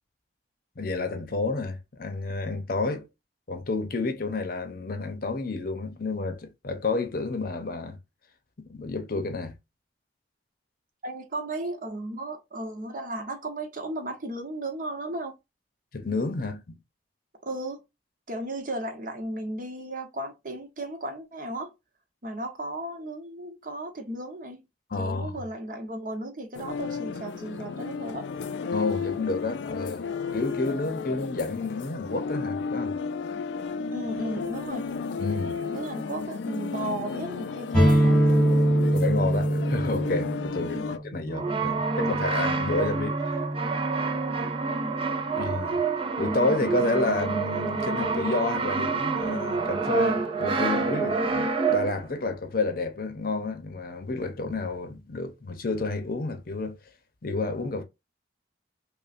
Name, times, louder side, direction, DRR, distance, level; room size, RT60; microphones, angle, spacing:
voice 1, 0.8-3.0 3.5-8.0 8.6-9.5 15.9-16.6 24.9-25.4 28.7-30.0 30.3-32.9 35.2-35.6 38.9-43.2 45.3-45.8 46.2-56.8 57.2-57.8, left 3 dB, 55° left, 0.7 m, -30 dB
voice 2, 11.0-15.3 17.5-17.8 18.3-21.7 22.2-24.6 25.0-28.3 33.9-34.9 35.7-38.6 40.6-40.9 44.6-45.0, right 1 dB, 50° right, 0.9 m, -35 dB
sound 1, 26.5-41.0, left 5 dB, 85° left, 0.4 m, -33 dB
sound 2, 37.7-45.4, right 1 dB, 5° left, 1.6 m, -25 dB
Brass instrument, 41.3-52.1, right 4 dB, 30° right, 0.4 m, -27 dB
5.3 x 2.2 x 2.5 m
head